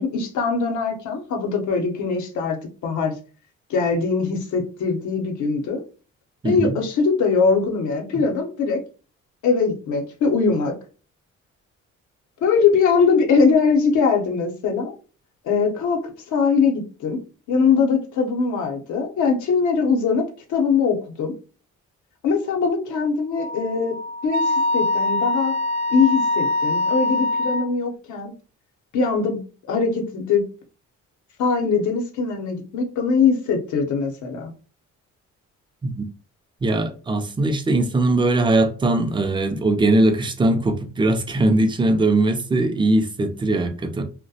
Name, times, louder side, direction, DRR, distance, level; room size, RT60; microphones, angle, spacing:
voice 1, 0.0-2.6 2.8-3.1 3.7-5.8 6.4-8.8 9.4-10.7 12.4-14.9 15.4-17.2 17.5-21.3 22.2-24.0 24.2-25.6 25.9-28.3 28.9-29.4 29.7-30.4 31.4-34.5, left 5 dB, 75° left, 0.7 m, -21 dB
voice 2, 6.4-6.8 35.8-36.1 36.6-44.0, right 2 dB, 15° right, 0.4 m, -20 dB
Wind instrument woodwind instrument, 23.4-27.7, left 2 dB, 75° right, 0.5 m, -23 dB
2.3 x 2.1 x 2.6 m
cardioid pair, 90°, 30 cm